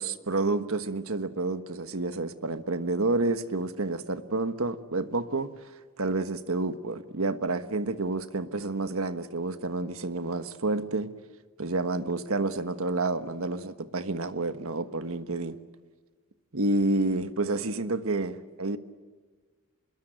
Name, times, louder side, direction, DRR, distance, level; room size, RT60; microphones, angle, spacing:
voice 1, 0.0-5.5 6.0-11.1 11.6-15.6 16.5-18.8, right 2 dB, 70° right, 1.4 m, -29 dB
26.0 x 21.5 x 8.9 m
head